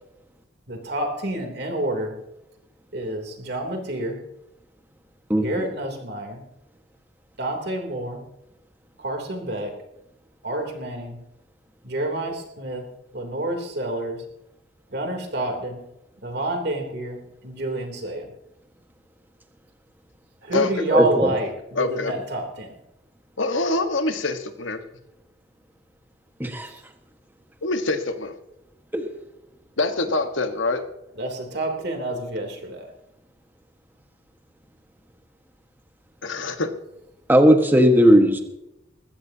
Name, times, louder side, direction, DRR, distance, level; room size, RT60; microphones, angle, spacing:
voice 1, 0.7-2.2 2.9-4.2 5.4-6.4 7.4-8.2 9.0-9.7 10.4-11.2 11.8-12.8 13.1-14.2 14.9-15.8 16.2-18.3 20.4-22.8 26.6-26.8 31.2-32.9, right 1 dB, 60° right, 2 dB, 3.2 m, -28 dB
voice 2, 20.9-21.3 26.4-26.7 28.9-29.0 37.3-38.4, equal, 10° right, 5 dB, 1.5 m, -16 dB
voice 3, 21.8-22.1 23.4-24.8 27.6-28.3 29.8-30.8 36.2-36.7, left 3 dB, 90° left, 8 dB, 1.4 m, -25 dB
21.0 x 15.5 x 2.8 m, 0.89 s
head